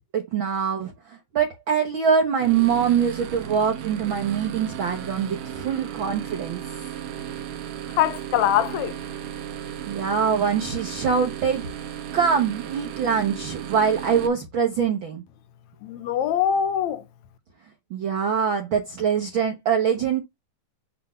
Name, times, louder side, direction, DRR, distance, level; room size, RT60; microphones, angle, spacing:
voice 1, 0.1-6.6 9.9-11.7 12.1-15.2 17.9-20.2, right 7 dB, 60° right, 1.3 m, -23 dB
sound 1, 2.4-14.3, right 10 dB, 85° right, 2.9 m, -35 dB
voice 2, 8.0-8.9 15.8-17.0, left 10 dB, 70° left, 2.0 m, -23 dB
7.5 x 3.5 x 5.6 m
omnidirectional pair, 3.6 m